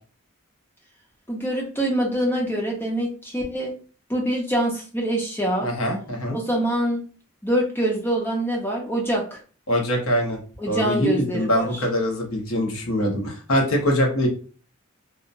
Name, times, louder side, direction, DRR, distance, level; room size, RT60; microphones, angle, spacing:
voice 1, 1.3-3.7 4.1-5.7 6.3-7.0 7.4-9.4 10.6-11.8, right 1 dB, 10° left, -1 dB, 0.6 m, -25 dB
voice 2, 5.6-6.4 9.7-10.4 10.7-14.3, equal, 90° left, 0 dB, 0.9 m, -23 dB
2.8 x 2.1 x 2.5 m, 0.38 s
head